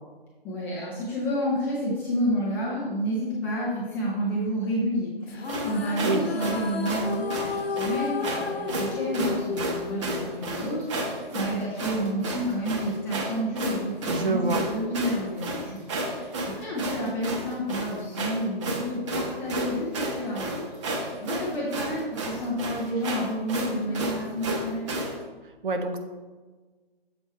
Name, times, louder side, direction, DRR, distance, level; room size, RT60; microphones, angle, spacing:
voice 1, 0.4-24.9, equal, 5° left, -7 dB, 0.5 m, -30 dB
sound 1, 5.3-10.8, left 5 dB, 75° left, 0.9 m, -33 dB
sound 2, 5.4-25.2, right 1 dB, 30° right, 1.0 m, -32 dB
voice 2, 14.1-14.6 25.6-26.0, right 3 dB, 55° right, 6 dB, 0.9 m, -26 dB
7.0 x 4.4 x 4.4 m, 1.3 s
figure-of-eight pair, 140°, 31 cm